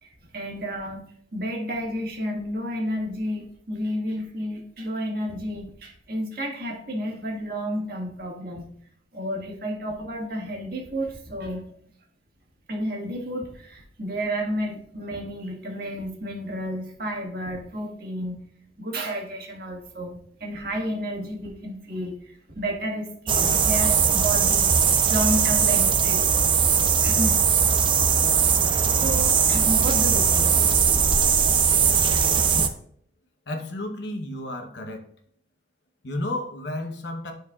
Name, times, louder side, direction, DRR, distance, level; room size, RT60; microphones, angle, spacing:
voice 1, 0.0-8.7 9.1-11.7 12.7-18.4 18.8-24.7 25.1-26.3 27.0-27.4 28.9-30.5 31.7-32.6, equal, 55° right, 0 dB, 1.6 m, -31 dB
sound 1, 23.3-32.7, right 6 dB, 30° right, 0.5 m, -20 dB
voice 2, 33.5-35.0 36.0-37.3, left 1 dB, 70° left, 4 dB, 0.9 m, -32 dB
11.5 x 4.6 x 2.4 m, 0.63 s
head